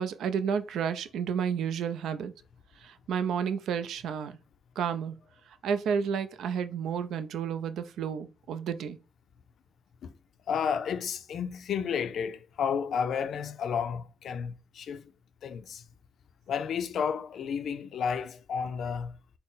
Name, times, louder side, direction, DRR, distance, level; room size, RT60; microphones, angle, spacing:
voice 1, 0.0-2.3 2.8-4.4 4.8-5.2 5.5-9.0, right 7 dB, 75° right, 0.4 m, -31 dB
voice 2, 10.5-15.1 15.4-15.8 16.5-19.2, left 7 dB, 65° left, 0.4 m, -32 dB
3.8 x 2.0 x 3.9 m
cardioid pair, 90°, 0 cm